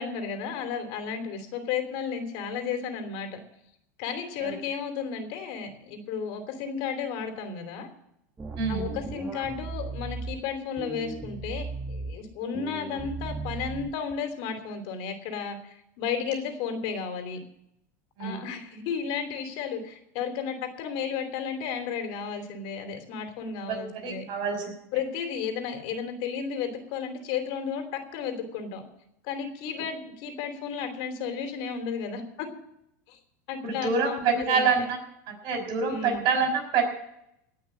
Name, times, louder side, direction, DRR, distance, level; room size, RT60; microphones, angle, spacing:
voice 1, 0.0-3.4 4.0-7.9 8.7-17.4 18.2-24.2 24.9-28.8 29.2-32.5 33.1-33.2 33.5-34.7 35.9-36.2, left 6 dB, 60° left, 6 dB, 2.9 m, -33 dB
sound 1, 8.4-10.4 10.8-12.1 12.5-14.1, right 4 dB, 15° right, 1.9 m, -36 dB
voice 2, 8.6-8.9 18.2-18.4 23.7-23.8 24.0-24.7 33.6-35.0 35.4-36.8, right 5 dB, 50° right, 4 dB, 5.6 m, -26 dB
18.0 x 6.1 x 9.8 m, 0.78 s
supercardioid pair, 115°, 10 cm